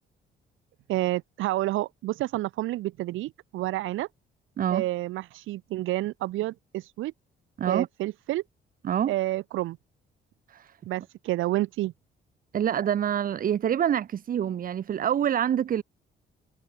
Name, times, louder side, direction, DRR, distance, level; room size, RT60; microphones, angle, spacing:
voice 1, 0.9-4.1 4.7-7.1 7.7-8.4 9.1-9.8 10.9-11.9, right 16 dB, 85° right, 0.7 m, -29 dB
voice 2, 12.5-15.8, right 9 dB, 45° right, 0.6 m, -26 dB
cardioid pair, 90°, 20 cm